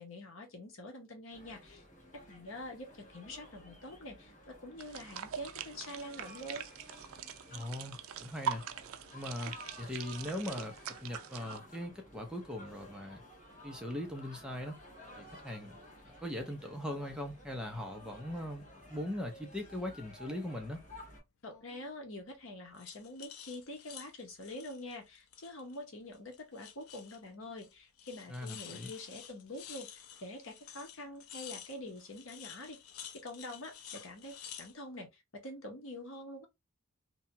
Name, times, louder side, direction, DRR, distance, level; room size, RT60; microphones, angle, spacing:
voice 1, 0.0-1.8 2.3-6.6 21.4-32.8 33.2-36.5, left 1 dB, 65° left, 0.9 m, -46 dB
sound 1, 1.3-21.2, left 1 dB, 35° left, 1.1 m, -54 dB
sound 2, 4.8-11.6, right 8 dB, 75° right, 0.3 m, -43 dB
voice 2, 7.5-8.6 9.1-10.7 11.0-13.2 13.6-14.8 15.2-15.8 16.1-20.8 28.3-28.9, left 1 dB, 5° right, 0.5 m, -40 dB
sound 3, 15.1-15.3 16.8-17.1 17.5-18.4 18.8-19.8 21.5-21.9 22.7-25.8 26.1-27.3 27.6-27.7 28.0-34.7, left 9 dB, 80° left, 0.4 m, -51 dB
2.8 x 2.2 x 2.7 m
head